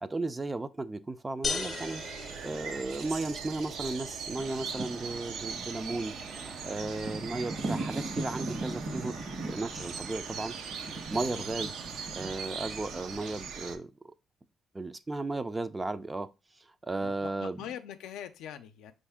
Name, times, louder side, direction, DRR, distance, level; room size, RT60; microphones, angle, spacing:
voice 1, 0.0-2.0 2.4-6.2 6.6-9.1 9.4-10.6 11.1-11.7 12.2-13.9 14.7-16.3 16.8-17.6, right 2 dB, 20° right, 0.3 m, -35 dB
sound 1, 1.4-3.3, left 4 dB, 30° left, 0.5 m, -36 dB
sound 2, 1.5-13.8, right 6 dB, 80° right, 0.5 m, -40 dB
sound 3, 4.4-13.3, right 2 dB, 60° right, 1.1 m, -40 dB
voice 2, 11.1-11.5 17.0-18.9, left 9 dB, 90° left, 0.4 m, -43 dB
5.4 x 2.5 x 3.4 m
cardioid pair, 90°, 0 cm